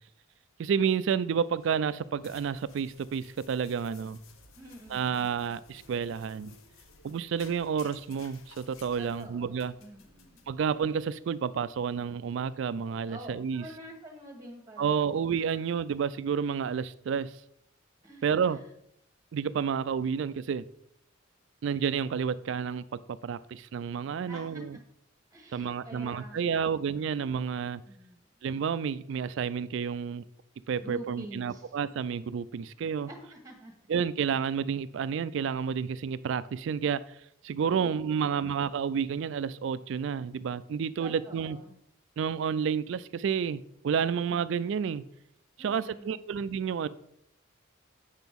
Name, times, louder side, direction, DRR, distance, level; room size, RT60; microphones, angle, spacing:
voice 1, 0.6-4.2 4.9-6.5 7.0-9.7 10.5-13.6 14.8-17.3 18.2-18.6 19.3-20.6 21.6-22.8 23.2-24.8 25.5-27.8 28.4-30.2 30.7-33.1 33.9-37.0 37.4-41.6 42.2-45.0 45.6-46.9, right 7 dB, 60° right, 0.3 m, -30 dB
sound 1, 1.3-11.3, left 5 dB, 80° left, 0.9 m, -57 dB
voice 2, 4.6-5.2 9.0-10.5 13.1-15.2 18.0-18.7 24.3-24.8 25.3-27.0 27.8-28.3 30.8-31.7 33.1-33.7 37.7-38.5 41.0-41.7 45.6-46.2, right 1 dB, 15° right, 1.2 m, -47 dB
8.0 x 6.0 x 3.6 m
head